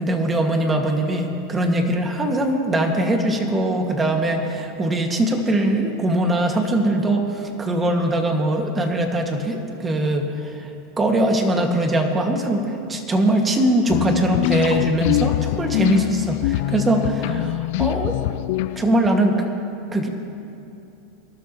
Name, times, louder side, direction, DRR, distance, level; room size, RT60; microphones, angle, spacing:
voice 1, 0.0-10.7 11.0-18.2 18.8-19.4 19.9-20.1, right 1 dB, 20° right, 3 dB, 2.0 m, -21 dB
sound 1, 13.9-19.1, left 17 dB, 65° left, 0.3 m, -24 dB
24.0 x 12.5 x 3.1 m, 2.8 s
hypercardioid pair, 110°, 0 cm